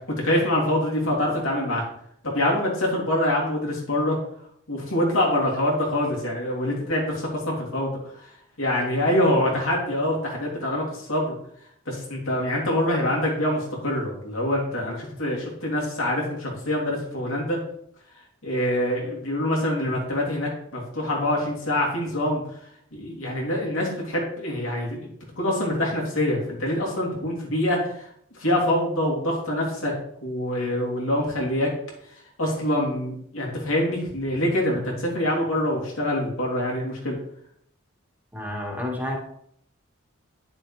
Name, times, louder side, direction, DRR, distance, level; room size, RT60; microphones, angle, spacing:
voice 1, 0.2-1.8 2.2-4.2 4.7-7.9 8.6-11.3 11.9-17.6 18.4-22.4 22.9-25.0 25.4-28.1 28.4-29.9 30.2-31.7 32.4-37.2, left 1 dB, 85° left, -2 dB, 3.0 m, -25 dB
voice 2, 38.3-39.2, left 1 dB, 10° right, -1 dB, 1.8 m, -30 dB
9.9 x 6.9 x 3.4 m, 0.69 s
head